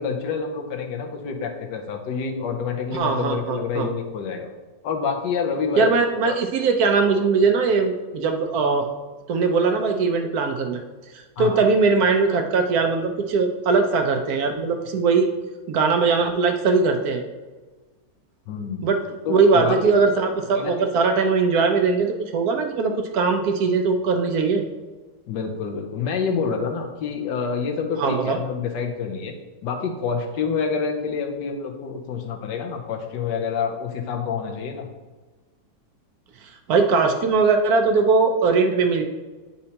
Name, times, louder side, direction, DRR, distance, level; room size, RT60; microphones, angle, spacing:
voice 1, 0.0-4.5 4.8-5.9 6.2-6.4 11.4-11.6 18.5-18.9 19.3-19.9 20.5-20.7 25.3-29.3 29.6-34.9, left 5 dB, 80° left, 3 dB, 1.4 m, -27 dB
voice 2, 2.9-3.9 5.8-8.9 9.3-10.8 11.4-15.3 15.7-17.2 18.8-19.0 19.3-24.6 28.0-28.4 36.7-39.0, right 4 dB, 70° right, 4 dB, 1.0 m, -20 dB
9.3 x 4.3 x 2.8 m, 1.3 s
omnidirectional pair, 1.9 m